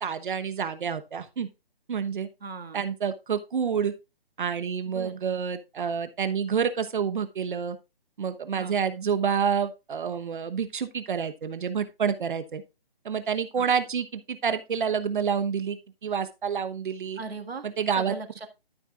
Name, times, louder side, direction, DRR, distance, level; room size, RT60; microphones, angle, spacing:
voice 1, 0.0-1.5 1.9-2.3 2.7-3.9 4.4-7.8 8.2-12.6 13.0-17.2 17.6-18.2, right 7 dB, 55° right, 10 dB, 1.1 m, -28 dB
voice 2, 2.4-2.8 4.9-5.2 8.6-8.8 13.6-13.7 17.2-17.7 18.0-18.5, right 4 dB, 85° right, 6 dB, 1.9 m, -38 dB
12.5 x 6.5 x 2.4 m, 0.26 s
hypercardioid pair, 150°, 30 cm